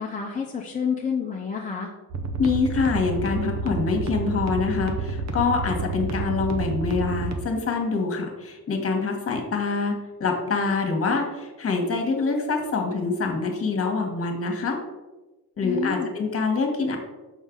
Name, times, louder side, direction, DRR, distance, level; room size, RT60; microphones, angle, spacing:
voice 1, 0.0-1.9 15.6-16.1, left 6 dB, 25° left, -1 dB, 0.6 m, -29 dB
sound 1, 2.1-7.4, right 4 dB, 50° right, 1.0 m, -29 dB
voice 2, 2.4-14.8 15.6-17.0, left 4 dB, 40° left, 3 dB, 1.4 m, -25 dB
6.6 x 5.3 x 3.8 m, 1.2 s
cardioid pair, 120°, 35 cm